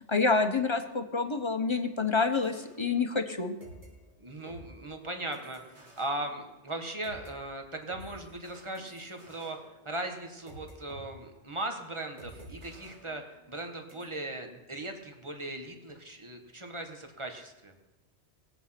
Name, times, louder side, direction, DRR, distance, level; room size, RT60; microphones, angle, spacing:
voice 1, 0.1-3.5, left 4 dB, 25° left, 7 dB, 1.0 m, -27 dB
sound 1, 2.1-3.3 3.6-7.3 7.9-11.0 11.3-11.6 12.2-13.6 13.9-14.1, right 1 dB, 75° right, 3.5 m, -52 dB
voice 2, 4.2-9.6 9.9-17.7, right 2 dB, 25° right, 4 dB, 1.8 m, -38 dB
20.0 x 8.3 x 5.9 m, 1.1 s
omnidirectional pair, 1.2 m